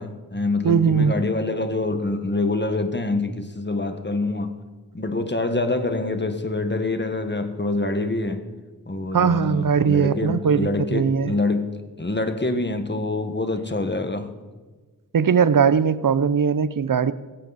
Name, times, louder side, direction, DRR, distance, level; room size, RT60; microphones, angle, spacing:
voice 1, 0.0-4.6 4.9-8.4 8.9-14.3, left 2 dB, 30° left, 1.6 m, -26 dB
voice 2, 0.6-1.1 9.1-11.4 15.1-17.1, right 6 dB, 60° right, 0.8 m, -20 dB
17.0 x 16.0 x 4.2 m
cardioid pair, 45°, 37 cm